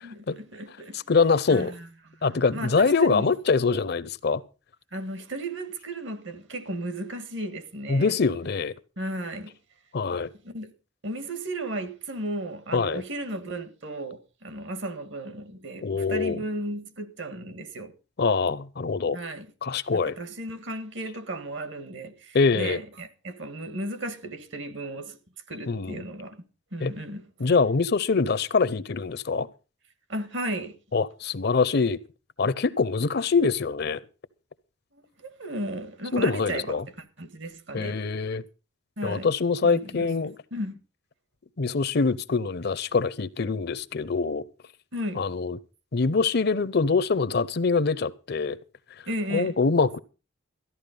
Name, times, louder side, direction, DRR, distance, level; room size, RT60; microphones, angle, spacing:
voice 1, 0.0-1.0 1.5-3.3 4.9-8.1 9.0-9.5 10.1-10.7 11.0-17.9 19.1-19.5 19.9-25.2 25.5-26.4 26.7-27.2 30.1-30.8 34.9-36.8 37.2-38.0 39.0-39.3 39.6-40.1 40.5-40.8 44.9-45.3 49.1-49.6, right 1 dB, 65° right, 1.6 m, -35 dB
voice 2, 0.9-1.7 2.2-4.4 7.9-8.7 9.9-10.3 12.7-13.0 15.8-16.4 18.2-19.2 19.6-20.2 22.3-22.8 25.7-26.0 26.8-26.9 27.4-29.5 30.9-32.0 32.4-34.0 36.1-36.8 37.7-38.4 39.0-40.4 41.6-44.4 45.2-45.6 45.9-48.6 49.3-50.0, left 4 dB, 50° left, 0.6 m, -24 dB
13.5 x 11.0 x 5.3 m
head